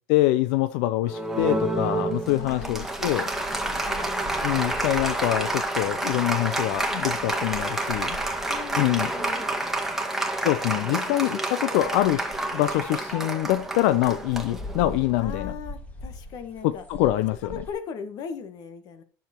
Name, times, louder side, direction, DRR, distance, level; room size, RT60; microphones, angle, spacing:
voice 1, 0.1-3.3 4.4-8.2 8.8-9.1 10.4-12.2 12.5-15.5 16.6-17.4, left 15 dB, 90° left, 12 dB, 0.5 m, -24 dB
Applause, 1.0-15.1, right 2 dB, 5° right, 1.9 m, -29 dB
sound 1, 1.4-17.7, equal, 20° left, 2.2 m, -43 dB
voice 2, 2.3-4.5 8.4-9.5 10.7-11.3 15.2-16.8 17.4-19.0, left 7 dB, 60° left, 9 dB, 1.8 m, -39 dB
10.5 x 7.2 x 4.5 m, 0.40 s
cardioid pair, 120°, 8 cm